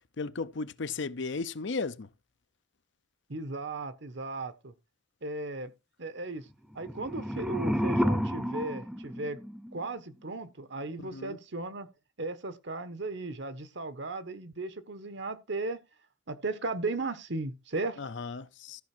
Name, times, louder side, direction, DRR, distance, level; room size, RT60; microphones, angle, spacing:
voice 1, 0.2-2.1 11.1-11.4 18.0-18.8, left 4 dB, 70° left, 0.7 m, -35 dB
voice 2, 3.3-4.7 5.2-5.7 6.0-6.5 6.7-9.4 9.7-11.9 12.2-15.8 16.3-18.0, right 2 dB, 70° right, 1.3 m, -36 dB
sound 1, 6.7-9.9, equal, 5° right, 0.7 m, -31 dB
13.5 x 5.8 x 4.5 m
head